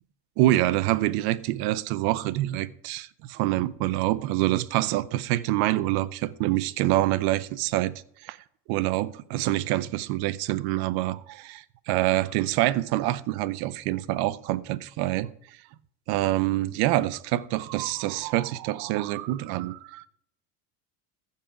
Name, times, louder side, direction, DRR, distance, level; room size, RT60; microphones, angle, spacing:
voice 1, 0.4-7.9 8.2-8.4 8.7-15.3 16.1-20.1, right 16 dB, 50° right, 0.6 m, -26 dB
14.5 x 5.7 x 5.0 m
cardioid pair, 155°, 49 cm